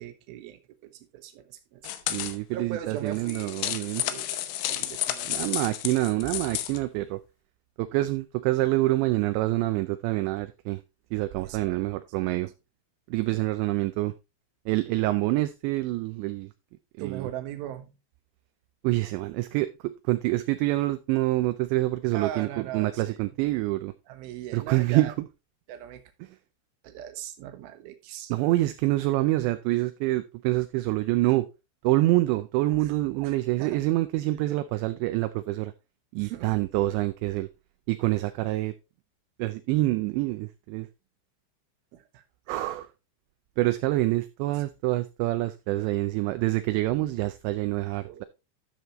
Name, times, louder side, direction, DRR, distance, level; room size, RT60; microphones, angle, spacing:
voice 1, 0.0-1.9 2.5-5.6 11.4-11.8 17.0-17.9 22.1-23.2 24.1-25.1 25.7-26.0 26.8-28.3 32.8-33.8 36.2-36.5 41.9-42.6 48.0-48.2, right 11 dB, 65° right, 2.6 m, -40 dB
sound 1, 1.8-2.4 3.1-6.8, left 13 dB, 80° left, 3.0 m, -32 dB
voice 2, 2.1-4.0 5.3-7.2 7.8-10.8 11.1-12.5 13.1-14.1 14.7-16.5 17.0-17.3 18.8-23.9 24.5-25.1 28.3-31.5 31.8-35.7 36.1-37.5 37.9-38.7 39.4-40.9 42.5-42.9 43.6-48.2, right 18 dB, 85° right, 2.6 m, -26 dB
12.5 x 6.8 x 3.0 m
omnidirectional pair, 5.6 m